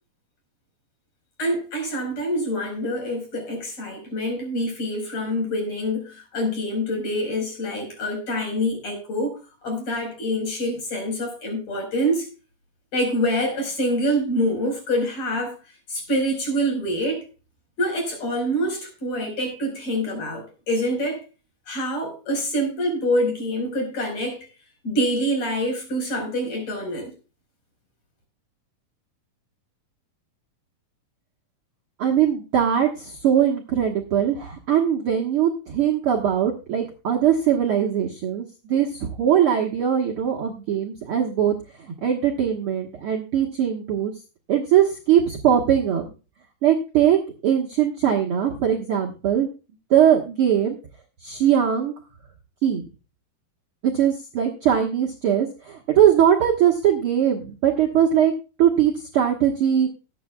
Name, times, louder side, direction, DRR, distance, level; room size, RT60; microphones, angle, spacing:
voice 1, 1.4-12.3 12.9-15.6 15.9-17.2 17.8-21.2 21.7-24.5 24.8-27.1, equal, 50° left, 5.8 m, -26 dB
voice 2, 32.0-41.5 42.0-44.1 44.5-46.0 46.6-49.5 49.9-50.8 51.2-51.9 52.6-52.8 53.8-58.3 58.6-59.9, right 9 dB, 55° right, 1.7 m, -21 dB
19.5 x 8.7 x 2.3 m
omnidirectional pair, 3.9 m